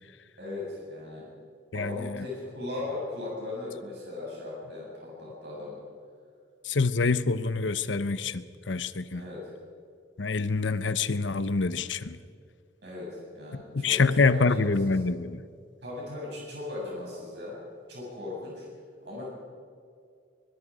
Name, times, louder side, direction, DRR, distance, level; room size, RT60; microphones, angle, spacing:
voice 1, 0.4-1.3 1.7-5.8 9.1-9.4 12.8-14.7 15.8-17.6 17.9-18.7 19.0-19.3, left 2 dB, 60° right, -5 dB, 7.5 m, -38 dB
voice 2, 1.7-2.2 6.6-9.2 10.2-12.2 13.7-15.4, left 4 dB, 80° left, 14 dB, 0.9 m, -26 dB
24.0 x 22.0 x 5.0 m, 2.3 s
head